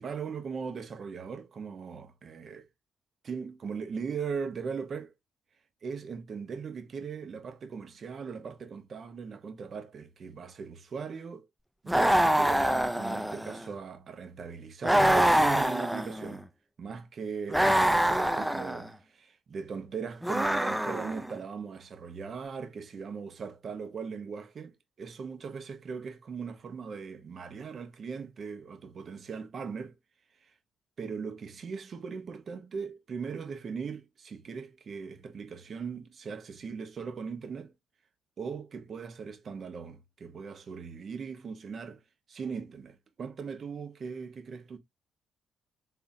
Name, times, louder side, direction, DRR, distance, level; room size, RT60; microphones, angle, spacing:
voice 1, 0.0-2.7 3.2-5.1 5.8-11.5 11.8-16.4 16.8-30.0 30.4-30.5 31.0-37.7 38.4-42.0 42.3-44.8, right 5 dB, 50° right, 1.0 m, -39 dB
sound 1, 11.9-13.7 14.8-16.4 17.5-18.9 20.2-21.3, right 1 dB, 5° right, 0.4 m, -25 dB
3.6 x 3.5 x 2.6 m
cardioid pair, 90°, 0 cm